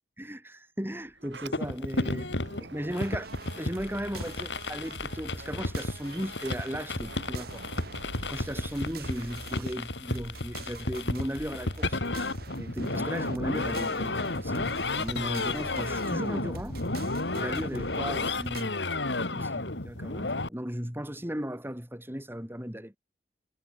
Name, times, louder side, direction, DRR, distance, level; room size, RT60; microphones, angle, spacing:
voice 1, 0.2-2.3 2.6-3.3 3.6-7.7 8.3-12.0 12.6-16.8 17.3-18.8 19.3-23.0, equal, 10° right, 3.4 m, -36 dB
Sliding door, 1.0-5.2 5.5-10.2, right 3 dB, 80° right, 2.9 m, -49 dB
sound 1, 1.5-20.5, left 2 dB, 80° left, 2.9 m, -32 dB
sound 2, 3.0-18.6, right 3 dB, 60° right, 1.6 m, -45 dB
head